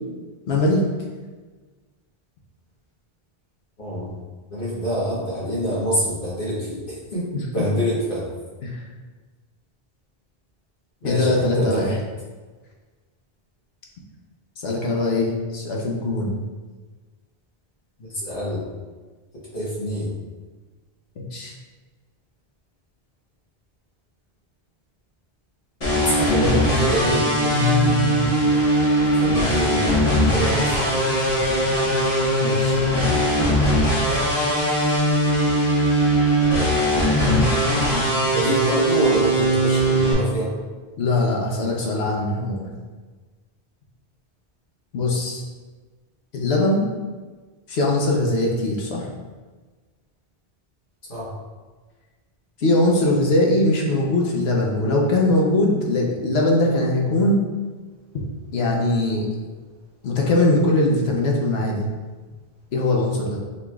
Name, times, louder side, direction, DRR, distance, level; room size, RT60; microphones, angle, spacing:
voice 1, 0.5-0.8 7.3-7.4 8.6-8.8 11.0-12.0 14.6-16.4 21.2-21.5 26.3-28.3 32.4-32.8 37.2-38.7 41.0-42.7 44.9-45.4 46.3-46.9 47.7-49.1 52.6-57.4 58.5-59.3 60.0-61.8 62.7-63.4, left 2 dB, 80° left, -2 dB, 1.0 m, -21 dB
voice 2, 3.8-4.1 4.5-7.2 7.5-8.2 11.0-11.9 18.0-18.6 19.5-20.1 25.9-27.3 29.2-31.0 38.3-40.5 51.1-51.3, equal, 55° left, -7 dB, 1.4 m, -26 dB
sound 1, 25.8-40.1, right 1 dB, 35° left, 1.4 m, -20 dB
5.8 x 3.0 x 2.3 m, 1.3 s
omnidirectional pair, 1.1 m